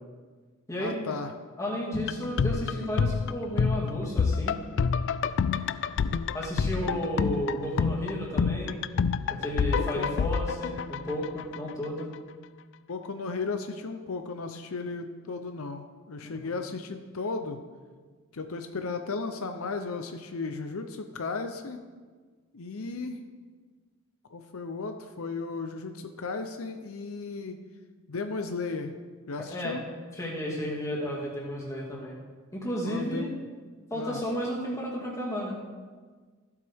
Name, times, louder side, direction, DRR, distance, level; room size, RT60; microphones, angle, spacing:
voice 1, 0.8-1.3 6.8-7.0 9.8-10.2 12.9-17.6 18.3-21.8 22.5-23.2 24.3-27.6 28.1-28.9 29.3-29.8 32.8-33.3 33.9-34.2, left 4 dB, 75° left, 6 dB, 0.7 m, -35 dB
voice 2, 1.6-4.6 6.3-8.8 9.3-12.1 16.3-16.5 29.5-29.8 30.2-32.1 32.5-33.3 33.9-35.6, equal, 15° left, -3 dB, 2.1 m, -33 dB
sound 1, 1.9-11.9 12.1-12.2, left 5 dB, 55° left, 0.3 m, -28 dB
15.0 x 8.2 x 3.6 m, 1.5 s
head